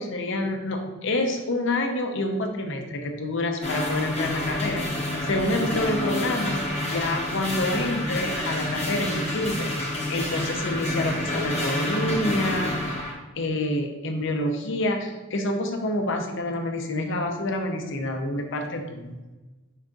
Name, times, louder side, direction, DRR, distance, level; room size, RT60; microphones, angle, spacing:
voice 1, 0.0-13.0 13.4-19.2, left 1 dB, 65° left, 4 dB, 0.6 m, -28 dB
sound 1, 3.6-13.1, left 1 dB, 35° left, 1.0 m, -28 dB
5.5 x 3.8 x 2.4 m, 1.2 s
head